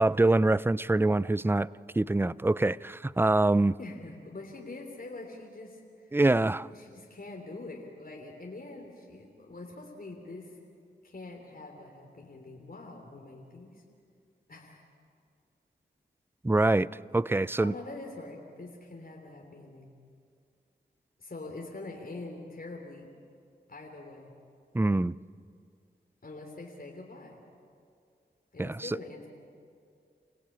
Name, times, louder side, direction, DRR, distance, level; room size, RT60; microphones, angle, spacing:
voice 1, 0.0-1.7 2.0-3.7 6.1-6.7 16.4-16.9 17.1-17.7 24.7-25.2 28.6-28.9, right 2 dB, 10° right, 0.5 m, -24 dB
voice 2, 3.8-10.6 11.0-13.8 14.5-14.8 17.6-19.9 21.2-23.1 23.7-24.3 26.2-27.4 28.5-29.3, left 2 dB, 50° left, 3.3 m, -44 dB
27.5 x 17.0 x 8.7 m
cardioid pair, 40°, 19 cm